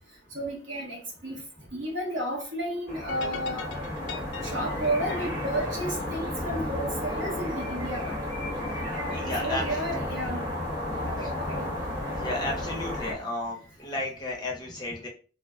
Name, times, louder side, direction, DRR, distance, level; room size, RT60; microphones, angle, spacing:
voice 1, 0.3-1.4 1.7-3.7 4.4-8.2 9.4-10.4 11.0-11.7 13.0-13.1, right 1 dB, 85° right, 1.1 m, -32 dB
sound 1, 2.9-13.1, left 1 dB, 15° right, 1.1 m, -32 dB
sound 2, 3.1-6.5, left 6 dB, 85° left, 0.5 m, -41 dB
voice 2, 9.1-9.6 11.2-11.3 12.1-15.1, left 1 dB, 20° left, 0.7 m, -33 dB
3.4 x 2.1 x 2.4 m
head